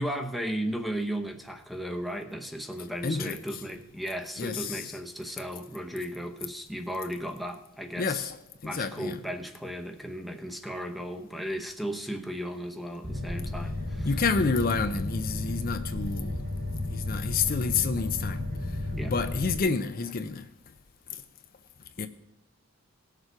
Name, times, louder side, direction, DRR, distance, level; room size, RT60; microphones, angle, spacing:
voice 1, 0.0-8.3 8.6-14.1 18.9-19.1, equal, ahead, 0.8 m, -35 dB
voice 2, 3.0-3.6 4.4-5.0 8.0-9.2 14.0-16.5 16.9-18.4 18.7-18.8 19.1-20.5 21.1-21.2 22.0-22.1, left 4 dB, 45° left, 0.6 m, -29 dB
sound 1, 13.0-19.6, left 2 dB, 50° right, 2.6 m, -33 dB
18.0 x 6.7 x 4.7 m
head